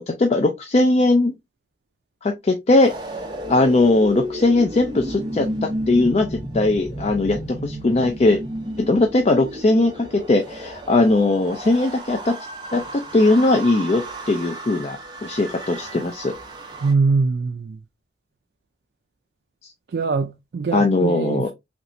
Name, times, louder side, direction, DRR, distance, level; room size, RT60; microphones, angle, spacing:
voice 1, 0.0-1.3 2.2-2.9 3.5-8.4 8.8-12.4 12.7-16.3 20.7-21.5, left 2 dB, 35° left, 0.4 m, -19 dB
sound 1, 2.8-16.9, right 1 dB, 25° right, 0.6 m, -33 dB
voice 2, 16.8-17.8 19.9-21.5, right 4 dB, 60° right, 0.3 m, -22 dB
3.2 x 3.0 x 2.5 m
head